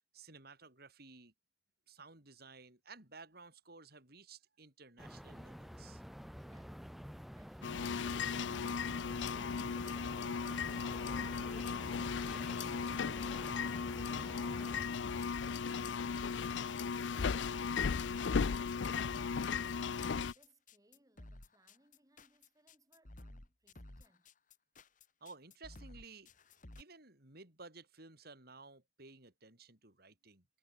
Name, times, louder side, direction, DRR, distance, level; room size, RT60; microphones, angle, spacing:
voice 1, 0.1-1.3 1.9-6.0 25.2-26.3 26.8-30.5, right 4 dB, 60° right, 6.1 m, -55 dB
sound 1, 5.0-14.8, equal, ahead, 1.5 m, -50 dB
voice 2, 6.3-14.7 15.1-18.4 18.7-20.0 20.3-24.3, right 1 dB, 20° right, 6.7 m, -71 dB
sound 2, 7.6-20.3, left 6 dB, 90° left, 0.5 m, -36 dB
sound 3, 10.7-26.8, left 1 dB, 45° left, 2.3 m, -54 dB
head